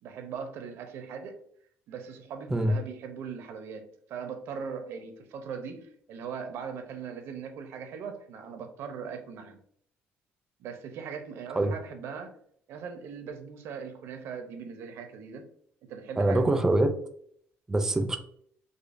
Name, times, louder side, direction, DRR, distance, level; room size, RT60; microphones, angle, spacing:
voice 1, 0.0-1.4 1.9-9.6 10.6-12.3 12.7-15.5 15.8-16.6, right 6 dB, 65° right, 0.6 m, -40 dB
voice 2, 16.2-16.9 17.7-18.2, right 2 dB, 10° right, 0.4 m, -24 dB
5.0 x 2.1 x 2.5 m
cardioid pair, 155°, 5 cm